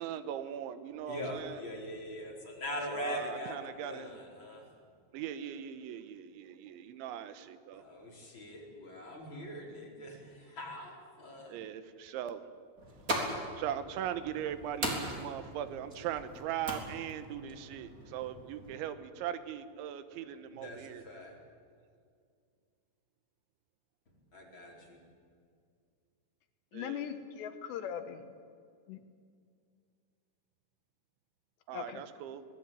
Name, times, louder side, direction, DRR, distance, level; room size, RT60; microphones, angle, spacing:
voice 1, 0.0-1.6 2.9-4.1 5.1-7.8 11.5-12.4 13.6-21.0 26.7-27.1 31.7-32.4, right 10 dB, 90° right, 12 dB, 3.5 m, -40 dB
voice 2, 1.1-3.6 3.8-4.7 7.7-11.5 20.5-21.3 24.3-25.0, equal, 25° left, -1 dB, 5.1 m, -42 dB
sound 1, 12.8-18.8, right 1 dB, 20° right, 3.3 m, -40 dB
voice 3, 26.7-28.3 28.9-29.0 31.7-32.0, left 9 dB, 75° left, 9 dB, 3.2 m, -40 dB
23.5 x 19.5 x 9.0 m, 2.2 s
omnidirectional pair, 5.2 m